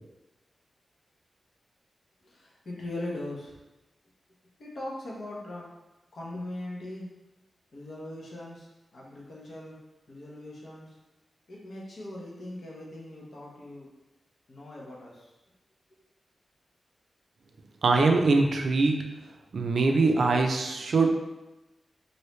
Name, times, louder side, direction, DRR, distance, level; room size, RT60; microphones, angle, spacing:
voice 1, 2.2-3.6 4.6-5.7 6.1-7.1 7.7-9.8 10.1-10.9 11.5-13.9 14.5-15.3, left 1 dB, 65° left, -4 dB, 0.9 m, -40 dB
voice 2, 17.8-19.0 19.5-21.1, right 3 dB, 70° right, 3 dB, 0.4 m, -23 dB
3.1 x 2.7 x 3.1 m, 1.0 s
wide cardioid pair, 95°, 0 cm